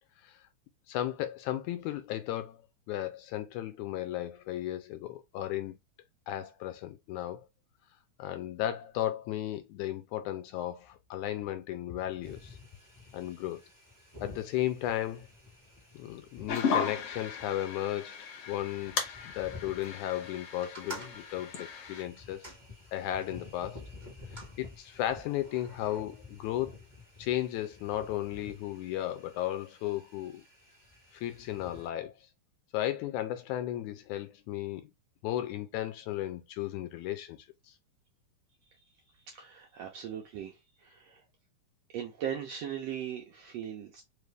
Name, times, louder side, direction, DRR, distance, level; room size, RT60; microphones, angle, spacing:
voice 1, 0.9-5.8 6.3-7.4 8.2-12.6 13.1-13.6 14.2-15.3 16.0-22.5 22.9-23.8 24.3-26.8 27.2-30.4 31.1-32.1 32.7-34.9 35.2-37.4 37.7-37.8, left 13 dB, 80° left, 1.8 m, -35 dB
sound 1, 12.2-31.9, left 3 dB, 30° left, 0.3 m, -52 dB
sound 2, 16.5-22.0, left 6 dB, 60° left, 1.8 m, -36 dB
sound 3, 20.6-23.4 24.0-24.6 25.3-26.0, right 1 dB, 50° right, 0.5 m, -48 dB
voice 2, 39.3-41.2 41.9-44.0, right 9 dB, 75° right, 1.5 m, -39 dB
4.9 x 2.5 x 3.3 m
omnidirectional pair, 3.7 m